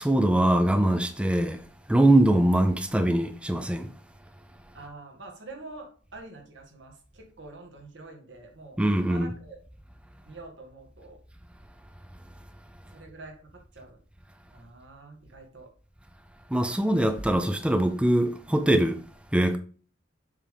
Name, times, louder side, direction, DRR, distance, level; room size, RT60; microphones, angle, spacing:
voice 1, 0.0-1.6 1.9-3.9 8.8-9.3 16.5-19.0 19.3-19.6, right 1 dB, 5° right, 0.5 m, -22 dB
voice 2, 4.7-8.8 9.1-9.6 10.3-11.2 12.9-14.0 14.5-15.7, right 2 dB, 70° right, 1.7 m, -46 dB
7.4 x 3.6 x 5.1 m
head